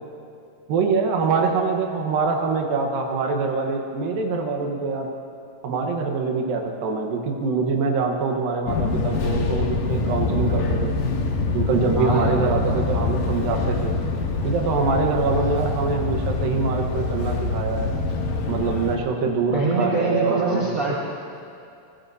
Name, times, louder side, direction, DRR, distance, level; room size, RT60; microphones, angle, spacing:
voice 1, 0.7-5.1 5.6-10.9 11.5-13.9 14.4-17.9 18.5-20.8, right 4 dB, 80° right, 2 dB, 3.0 m, -24 dB
Fixed-wing aircraft airplane, 8.7-19.0, left 3 dB, 75° left, 2.8 m, -25 dB
voice 2, 12.0-12.8 19.5-21.0, right 3 dB, 55° right, -6 dB, 0.9 m, -24 dB
23.0 x 20.0 x 2.8 m, 2.5 s
omnidirectional pair, 4.1 m